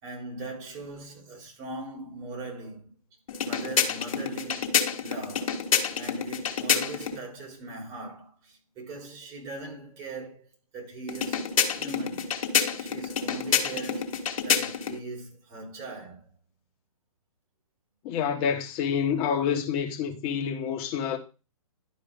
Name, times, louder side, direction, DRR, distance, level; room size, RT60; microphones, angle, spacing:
voice 1, 0.0-2.9 3.4-5.7 6.0-10.5 10.7-12.3 12.8-16.3, right 2 dB, 35° right, 3.7 m, -40 dB
sound 1, 3.3-7.2 11.1-15.0, left 7 dB, 65° left, 1.6 m, -28 dB
voice 2, 18.0-21.2, left 7 dB, 30° left, 1.4 m, -28 dB
11.5 x 4.8 x 3.6 m
hypercardioid pair, 135°, 19 cm